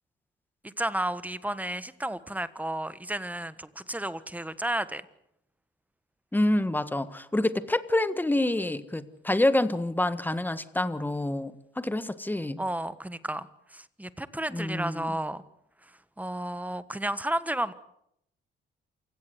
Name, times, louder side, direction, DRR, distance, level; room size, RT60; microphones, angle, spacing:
voice 1, 0.6-5.0 12.6-15.4 15.8-17.7, right 1 dB, 10° right, 14 dB, 1.4 m, -32 dB
voice 2, 6.3-12.6 14.5-15.1, left 1 dB, 10° left, 13 dB, 1.6 m, -27 dB
28.0 x 17.0 x 8.1 m, 0.75 s
cardioid pair, 90°, 20 cm